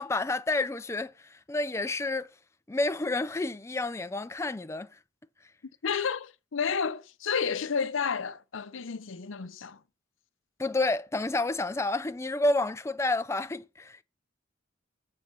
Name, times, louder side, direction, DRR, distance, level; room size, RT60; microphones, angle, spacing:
voice 1, 0.0-2.3 2.7-4.9 10.6-14.0, left 2 dB, 15° left, 0.4 m, -29 dB
voice 2, 5.8-9.8, left 6 dB, 75° left, 0.6 m, -31 dB
7.4 x 4.2 x 6.7 m
head